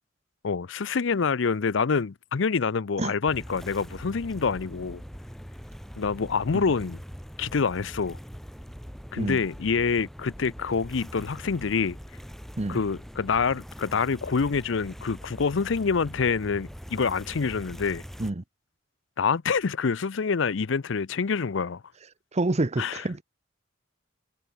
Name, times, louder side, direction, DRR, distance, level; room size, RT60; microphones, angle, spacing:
voice 1, 0.4-5.0 6.0-7.0 7.4-8.2 9.1-12.0 12.7-18.0 19.2-21.8 22.8-23.0, left 5 dB, 65° left, 0.6 m, -26 dB
sound 1, 3.3-18.3, equal, ahead, 3.1 m, -42 dB
voice 2, 22.3-23.2, right 2 dB, 35° right, 0.8 m, -27 dB
head